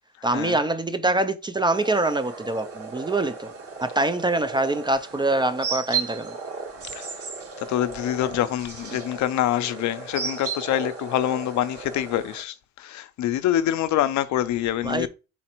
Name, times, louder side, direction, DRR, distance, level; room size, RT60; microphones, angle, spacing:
voice 1, 0.2-3.5 3.8-6.3 14.8-15.1, right 2 dB, 15° right, 0.3 m, -24 dB
sound 1, 1.7-12.4, right 5 dB, 50° right, 1.4 m, -35 dB
voice 2, 7.6-15.1, left 12 dB, 70° left, 0.5 m, -25 dB
4.2 x 3.9 x 2.9 m
cardioid pair, 90°, 30 cm